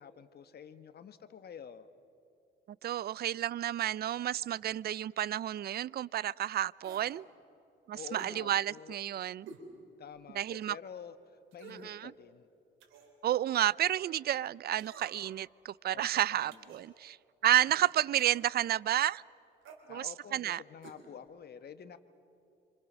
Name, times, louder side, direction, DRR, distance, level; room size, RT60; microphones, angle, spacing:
voice 1, 0.0-1.9 7.9-9.0 10.0-11.1 11.5-12.5 15.9-16.7 19.9-22.0, left 7 dB, 55° left, 1.4 m, -49 dB
voice 2, 2.8-7.2 7.9-9.5 10.4-10.7 11.7-12.1 13.2-17.2 17.4-19.2 19.9-20.6, right 12 dB, 55° right, 0.4 m, -31 dB
sound 1, 6.8-7.2 8.1-8.4 9.5-9.7 10.2-10.3 11.5-11.9 12.8-13.2 14.8-15.3 16.5-16.9 18.2-18.5 19.6-19.8 20.8-21.0 21.3-21.4, right 4 dB, 85° right, 3.8 m, -50 dB
27.0 x 26.5 x 6.2 m
cardioid pair, 90°, 20 cm